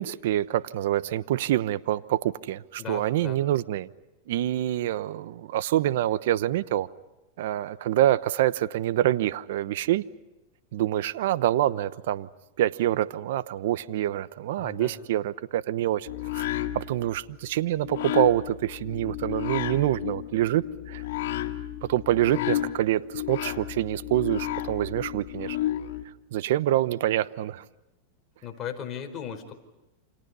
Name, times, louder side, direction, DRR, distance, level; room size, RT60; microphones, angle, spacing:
voice 1, 0.0-3.9 4.3-6.9 7.4-10.0 10.7-12.3 12.6-16.1 16.3-16.5 16.7-21.0 21.8-25.6 26.3-27.6, right 13 dB, 70° right, 16 dB, 0.9 m, -26 dB
voice 2, 2.8-3.4 14.6-15.0 22.3-22.6 28.4-29.5, left 8 dB, 30° left, 3 dB, 4.8 m, -37 dB
sound 1, 16.1-26.0, left 13 dB, 70° left, 2.0 m, -32 dB
29.5 x 27.0 x 5.6 m, 1.0 s
supercardioid pair, 135°, 0 cm